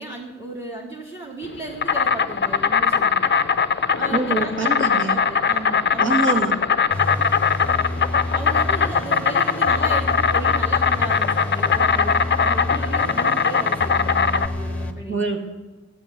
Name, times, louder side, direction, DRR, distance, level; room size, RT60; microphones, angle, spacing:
voice 1, 0.0-3.3 4.0-6.2 8.3-15.2, right 2 dB, 10° right, -3 dB, 2.1 m, -35 dB
Insect, 1.4-14.5, left 6 dB, 40° left, 0.6 m, -21 dB
voice 2, 4.1-5.2 6.0-6.5 15.1-15.4, right 3 dB, 40° right, 4 dB, 1.9 m, -24 dB
sound 1, 6.9-14.9, left 1 dB, 5° left, 1.3 m, -29 dB
14.5 x 7.7 x 9.6 m, 1.1 s
wide cardioid pair, 140°, 29 cm